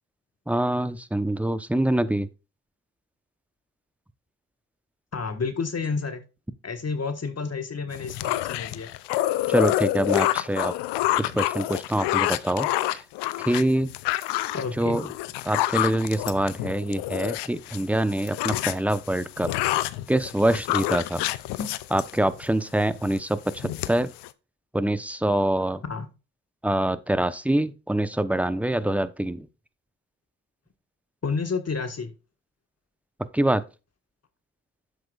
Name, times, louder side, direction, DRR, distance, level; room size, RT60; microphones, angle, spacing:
voice 1, 0.5-2.3 9.5-10.7 11.2-12.7 13.5-13.9 14.8-15.1 15.5-19.5 20.1-21.2 21.9-24.1 24.7-25.8 26.6-29.5 33.3-33.6, right 1 dB, 5° right, 0.9 m, -25 dB
voice 2, 5.1-6.2 6.6-8.9 14.5-15.0 21.6-21.7 25.8-26.1 31.2-32.1, left 4 dB, 35° left, 1.6 m, -30 dB
sound 1, 7.9-17.8 18.1-22.5 22.9-23.2 23.5-24.3, left 16 dB, 75° left, 0.7 m, -28 dB
10.5 x 7.7 x 2.4 m
hypercardioid pair, 45°, 42 cm